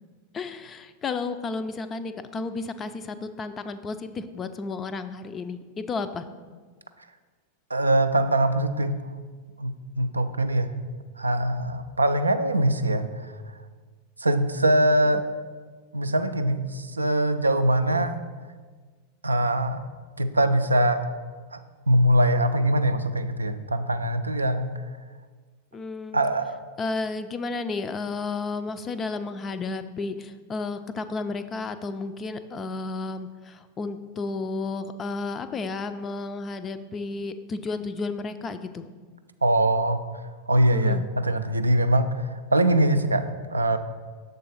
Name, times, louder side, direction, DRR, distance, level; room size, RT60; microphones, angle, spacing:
voice 1, 0.3-6.3 25.7-26.2 26.8-38.9 40.7-41.1, left 3 dB, 25° left, 10 dB, 0.4 m, -32 dB
voice 2, 7.7-9.1 9.6-10.7 11.2-13.3 14.2-15.2 15.9-18.2 19.2-19.9 20.2-21.0 21.5-21.6 21.9-24.7 26.1-26.6 39.4-40.0 40.5-43.8, right 1 dB, 80° right, 9 dB, 0.3 m, -23 dB
6.7 x 3.8 x 5.3 m, 1.5 s
figure-of-eight pair, 90°, 0 cm